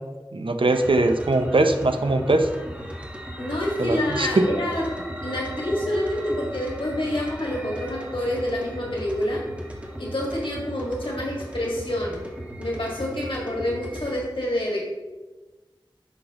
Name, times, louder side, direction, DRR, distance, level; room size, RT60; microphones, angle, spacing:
voice 1, 0.3-2.5 3.8-4.4, right 2 dB, 85° right, 7 dB, 0.6 m, -21 dB
sound 1, 0.7-14.2, equal, 15° right, 1.4 m, -37 dB
voice 2, 3.4-4.8 5.2-9.4 10.0-12.2 12.6-14.8, left 1 dB, 80° left, -4 dB, 1.8 m, -27 dB
10.0 x 6.4 x 3.0 m, 1.2 s
wide cardioid pair, 45°, 9 cm